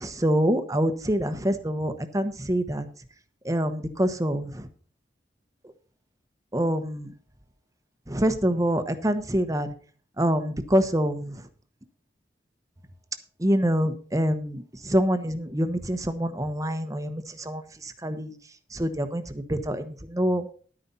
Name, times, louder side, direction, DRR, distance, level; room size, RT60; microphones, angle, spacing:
voice 1, 0.0-2.9 3.4-4.6 6.5-7.1 8.1-9.7 10.2-11.3 13.4-18.3 18.7-20.5, equal, 20° right, 10 dB, 1.1 m, -26 dB
11.5 x 9.4 x 4.2 m, 0.42 s
head